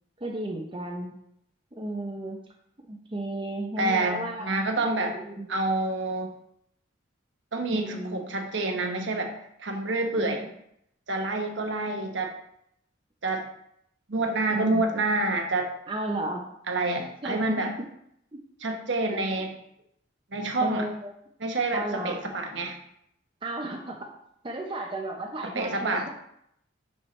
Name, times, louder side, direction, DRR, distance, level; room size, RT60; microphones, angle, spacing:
voice 1, 0.2-1.2 1.7-2.4 2.9-5.5 7.7-8.2 10.1-10.5 14.5-14.8 15.9-16.5 16.9-17.0 17.2-17.6 18.3-18.4 19.1-19.2 20.6-21.1 21.7-22.2 23.4-24.0 24.4-26.1, right 1 dB, 25° right, 1 dB, 0.7 m, -34 dB
voice 2, 3.8-5.1 5.5-6.3 7.5-9.3 9.6-10.4 11.1-12.3 13.2-13.5 14.1-15.7 16.7-17.7 18.6-19.6 20.3-20.9 21.4-22.8 25.4-26.1, right 2 dB, 75° right, 3 dB, 1.1 m, -27 dB
9.7 x 4.5 x 3.2 m, 0.75 s
head